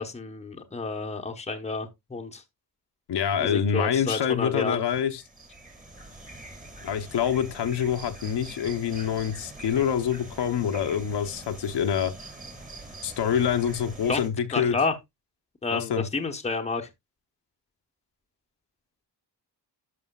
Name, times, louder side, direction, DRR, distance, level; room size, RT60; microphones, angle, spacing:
voice 1, 0.0-2.4 3.4-4.8 14.1-14.2 14.5-15.0 15.6-16.9, left 4 dB, 15° left, 0.9 m, -30 dB
voice 2, 3.1-5.2 6.8-12.1 13.0-14.8 15.7-16.0, left 8 dB, 75° left, 0.9 m, -26 dB
sound 1, 4.9-14.3, right 2 dB, 20° right, 1.8 m, -44 dB
11.0 x 6.2 x 2.3 m
wide cardioid pair, 160°, 42 cm